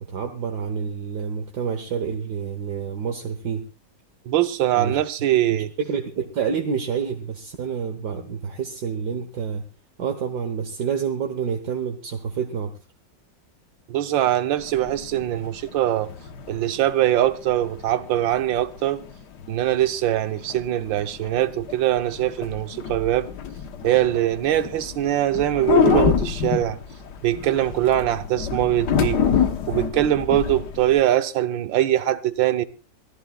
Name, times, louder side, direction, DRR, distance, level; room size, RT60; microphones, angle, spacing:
voice 1, 0.0-3.6 4.8-5.0 5.5-9.6 10.0-12.7, right 6 dB, 65° right, 1.7 m, -28 dB
voice 2, 4.3-5.7 13.9-16.1 16.5-19.0 19.5-23.3 23.8-26.8 27.2-29.2 29.7-32.7, right 13 dB, 85° right, 1.6 m, -22 dB
sound 1, 14.6-31.0, left 8 dB, 65° left, 1.6 m, -28 dB
24.5 x 15.0 x 2.4 m
omnidirectional pair, 2.0 m